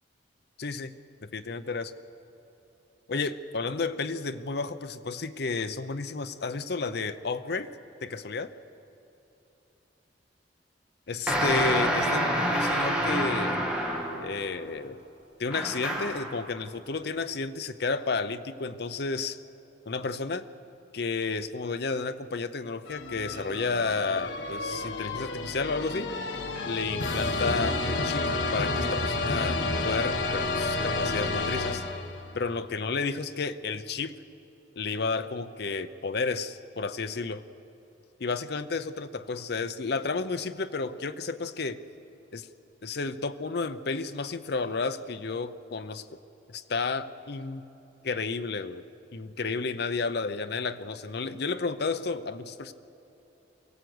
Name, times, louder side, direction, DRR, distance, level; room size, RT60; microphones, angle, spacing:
voice 1, 0.6-1.0 1.3-1.9 3.1-7.7 8.0-8.5 11.1-13.6 14.2-15.0 15.4-19.4 19.9-20.4 20.9-26.1 26.7-29.6 29.8-31.8 32.3-34.2 34.8-37.4 38.2-41.8 42.3-42.5 42.8-46.1 46.5-47.7 48.0-48.8 49.1-52.7, left 4 dB, 60° left, 10 dB, 0.7 m, -32 dB
sound 1, 11.3-14.3 15.5-16.3, equal, 5° right, 2.5 m, -27 dB
sound 2, 22.9-32.4, left 2 dB, 80° left, 1.4 m, -30 dB
23.5 x 16.5 x 7.9 m, 2.9 s
head